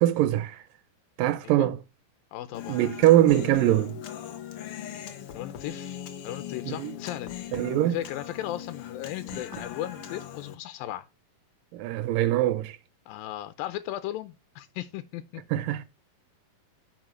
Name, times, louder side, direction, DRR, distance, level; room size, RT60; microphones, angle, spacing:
voice 1, 0.0-0.6 1.2-1.8 2.7-4.0 6.7-6.9 7.5-8.0 11.7-12.8 15.5-15.8, right 14 dB, 80° right, 2.4 m, -22 dB
voice 2, 2.3-2.9 5.3-7.4 7.8-11.1 13.1-15.4, left 13 dB, 90° left, 2.5 m, -36 dB
Human voice, 2.5-10.6, left 10 dB, 75° left, 1.3 m, -39 dB
8.9 x 6.3 x 6.3 m
omnidirectional pair, 4.0 m